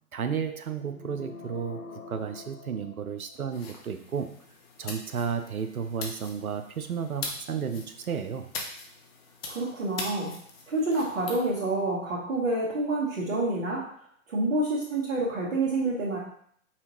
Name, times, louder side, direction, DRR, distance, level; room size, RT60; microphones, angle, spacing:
voice 1, 0.1-1.8 2.1-4.3 4.8-8.5, right 7 dB, 85° right, 8 dB, 0.6 m, -32 dB
sound 1, 0.9-3.6, left 4 dB, 70° left, 0.8 m, -45 dB
sound 2, 3.5-11.4, left 3 dB, 45° left, 0.9 m, -42 dB
voice 2, 9.5-10.3 10.7-13.8 14.3-16.2, right 2 dB, 65° right, -8 dB, 1.4 m, -28 dB
5.6 x 2.6 x 3.0 m, 0.63 s
figure-of-eight pair, 115°, 42 cm